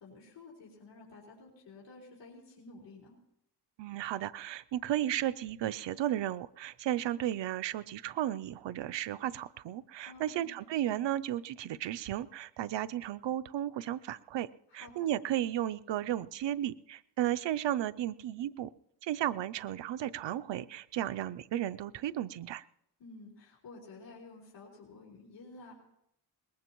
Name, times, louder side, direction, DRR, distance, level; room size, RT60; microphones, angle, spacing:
voice 1, 0.0-3.2 10.0-10.6 14.7-15.1 23.0-25.7, left 3 dB, 90° left, -5 dB, 4.8 m, -52 dB
voice 2, 3.8-14.5 14.7-18.7 19.0-22.6, right 12 dB, 90° right, 15 dB, 0.6 m, -34 dB
22.5 x 20.0 x 3.0 m, 0.77 s
wide cardioid pair, 110°, 42 cm